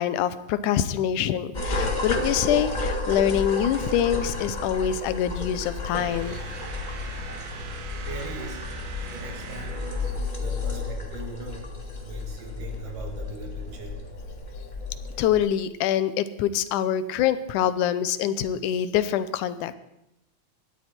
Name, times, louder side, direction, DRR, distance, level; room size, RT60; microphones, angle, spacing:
voice 1, 0.0-6.4 15.2-19.8, left 10 dB, 80° left, 14 dB, 2.2 m, -25 dB
sound 1, 1.5-15.4, left 2 dB, 50° left, 0.5 m, -32 dB
sound 2, 5.9-10.6, right 3 dB, 55° right, 1.5 m, -40 dB
voice 2, 7.9-8.6 9.1-9.8 10.4-11.7 12.0-14.0, right 3 dB, 85° right, 2 dB, 4.0 m, -39 dB
18.0 x 13.0 x 4.4 m, 0.84 s
omnidirectional pair, 3.6 m